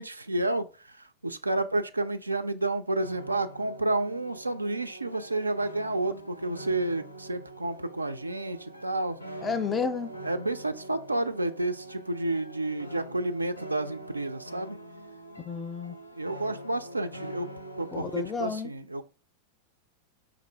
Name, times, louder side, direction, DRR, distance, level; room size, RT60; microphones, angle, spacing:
voice 1, 0.0-9.2 10.2-14.8 16.2-17.5 17.8-19.0, right 2 dB, 80° right, 0.3 m, -30 dB
sound 1, 3.0-18.4, right 1 dB, 85° left, 0.5 m, -44 dB
voice 2, 9.4-10.2 15.4-15.9 17.9-18.7, left 5 dB, 20° left, 0.4 m, -31 dB
4.9 x 2.6 x 3.3 m
figure-of-eight pair, 90°, 0 cm